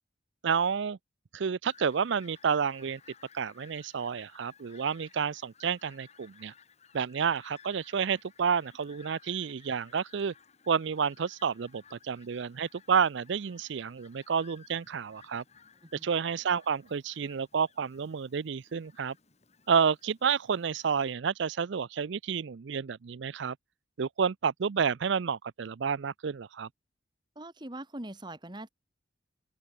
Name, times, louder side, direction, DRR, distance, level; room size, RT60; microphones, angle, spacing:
voice 1, 0.4-1.0 1.3-3.0 3.3-6.5 6.9-10.3 10.7-15.4 16.0-19.1 19.7-23.6 24.0-26.7, right 6 dB, 65° right, 0.4 m, -30 dB
Fowl, 1.6-21.1, left 7 dB, 35° left, 3.5 m, -59 dB
voice 2, 27.4-28.7, right 1 dB, 20° right, 1.9 m, -42 dB
head